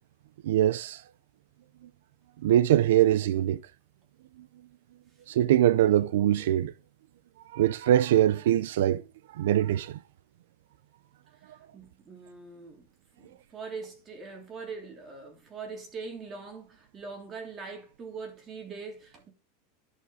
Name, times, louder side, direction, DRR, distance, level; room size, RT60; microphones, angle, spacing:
voice 1, 0.4-1.0 2.4-3.6 5.3-6.7 7.5-9.0 9.4-10.0, right 12 dB, 80° right, 0.5 m, -23 dB
voice 2, 11.4-12.9 13.2-19.3, right 4 dB, 25° right, 3.2 m, -42 dB
11.0 x 6.2 x 4.2 m
supercardioid pair, 150°, 0 cm